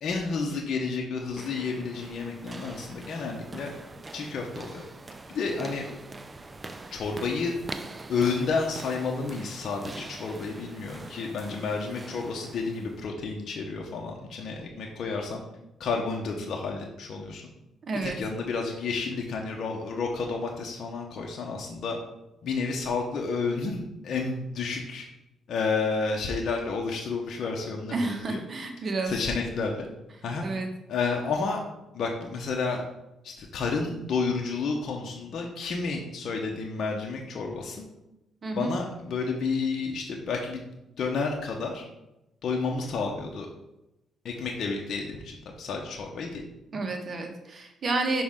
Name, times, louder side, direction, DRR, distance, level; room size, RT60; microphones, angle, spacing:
voice 1, 0.0-3.8 4.1-4.8 5.3-5.8 6.9-7.6 8.1-15.4 15.8-17.4 18.0-22.0 22.4-25.0 25.5-28.4 29.1-29.9 30.2-30.4 30.9-31.6 31.9-32.8 33.2-37.8 38.5-41.9 42.4-43.5 44.2-46.4, left 4 dB, 60° left, 0 dB, 0.9 m, -31 dB
sound 1, 1.2-13.1, right 2 dB, 25° right, 0.5 m, -43 dB
voice 2, 17.8-18.2 27.9-29.1 30.4-30.7 38.4-38.7 46.7-48.2, right 3 dB, 45° right, 3 dB, 1.2 m, -30 dB
5.8 x 5.1 x 3.7 m, 0.90 s
cardioid pair, 90°, 0 cm